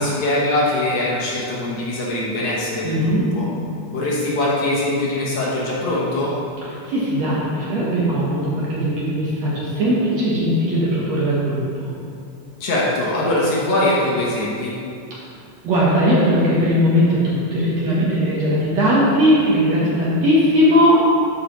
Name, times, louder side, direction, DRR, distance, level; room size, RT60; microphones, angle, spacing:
voice 1, 0.0-3.5 3.9-6.3 12.6-14.7, left 1 dB, 65° left, -5 dB, 2.2 m, -22 dB
voice 2, 2.8-3.3 6.6-12.0 15.6-21.1, equal, 65° right, -6 dB, 1.8 m, -18 dB
11.0 x 4.8 x 3.0 m, 2.5 s
omnidirectional pair, 3.9 m